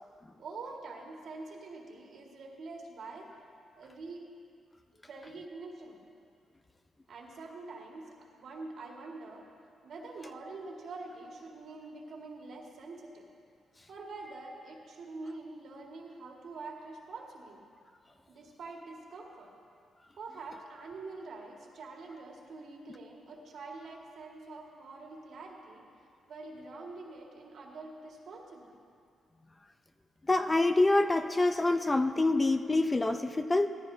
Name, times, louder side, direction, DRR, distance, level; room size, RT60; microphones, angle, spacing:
voice 1, 0.4-3.3 3.8-4.2 5.1-6.0 7.1-9.5 9.8-13.3 13.9-17.6 18.3-19.5 20.2-25.9 26.3-28.7 33.4-33.5, right 3 dB, 70° right, -1 dB, 1.9 m, -45 dB
voice 2, 30.3-33.7, left 2 dB, 20° left, 8 dB, 0.5 m, -26 dB
17.0 x 14.0 x 2.8 m, 2.4 s
cardioid pair, 95°, 0 cm